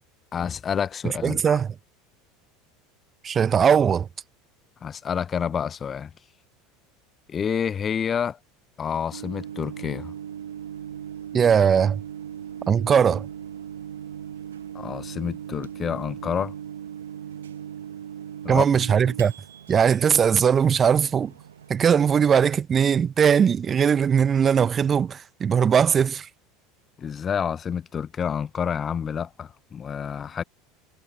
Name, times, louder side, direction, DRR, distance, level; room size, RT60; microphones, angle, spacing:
voice 1, 0.3-1.6 4.8-6.1 7.3-8.4 8.8-10.1 14.7-16.5 18.4-18.6 27.0-30.4, left 7 dB, 30° left, 1.2 m, -28 dB
voice 2, 1.0-1.7 3.2-4.1 11.3-12.0 12.7-13.3 18.5-19.3 19.7-21.3 21.7-26.3, right 7 dB, 30° right, 1.1 m, -20 dB
Microwave oven, 9.1-22.6, right 9 dB, 70° right, 1.6 m, -39 dB
figure-of-eight pair, 75°, 0 cm